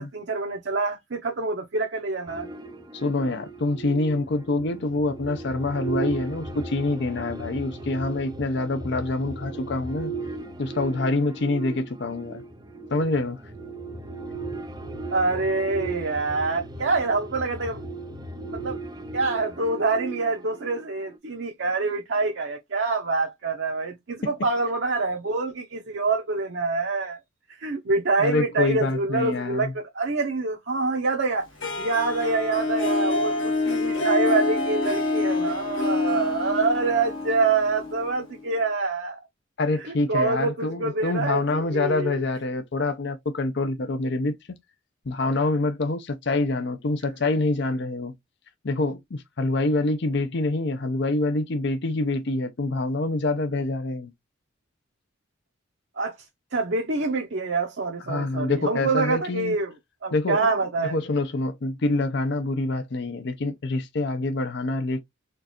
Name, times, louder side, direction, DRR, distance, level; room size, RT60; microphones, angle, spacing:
voice 1, 0.0-2.5 15.1-17.8 18.5-18.8 19.1-27.2 27.6-31.5 31.8-39.2 39.8-42.2 56.0-56.2 56.5-59.7 60.0-61.0, right 3 dB, 60° right, 0.7 m, -26 dB
sound 1, 2.3-21.2, right 3 dB, 20° right, 0.6 m, -37 dB
voice 2, 2.9-10.1 10.6-12.4 12.9-13.4 24.2-24.3 28.2-29.7 39.6-44.6 45.1-48.1 48.6-54.1 58.1-59.6 60.1-60.5 60.8-65.0, left 2 dB, 55° left, 0.6 m, -26 dB
Harp, 31.6-38.5, left 2 dB, 70° left, 1.5 m, -26 dB
4.4 x 2.4 x 2.8 m
head